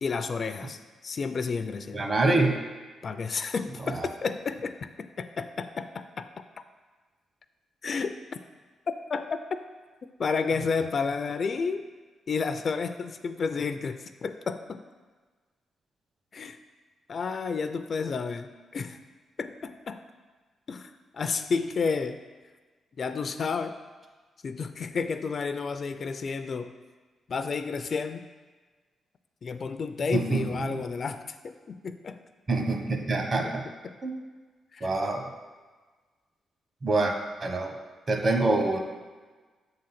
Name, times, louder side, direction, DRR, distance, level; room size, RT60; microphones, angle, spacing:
voice 1, 0.0-2.1 3.0-6.3 7.8-8.1 9.1-9.4 10.2-11.8 12.3-14.8 16.3-16.6 17.1-19.0 19.4-20.0 20.7-22.2 23.0-23.8 24.4-26.7 27.3-28.3 29.4-32.2 33.4-33.5 33.8-34.0 34.7-34.9, left 5 dB, 50° left, 10 dB, 0.4 m, -31 dB
voice 2, 1.9-2.6 3.9-4.1 30.1-30.8 32.5-33.6 34.0-34.1 34.8-35.2 36.8-37.1 37.4-37.7 38.1-38.8, right 2 dB, 40° right, 3 dB, 1.1 m, -25 dB
7.3 x 3.8 x 5.8 m, 1.4 s
cardioid pair, 95°, 0 cm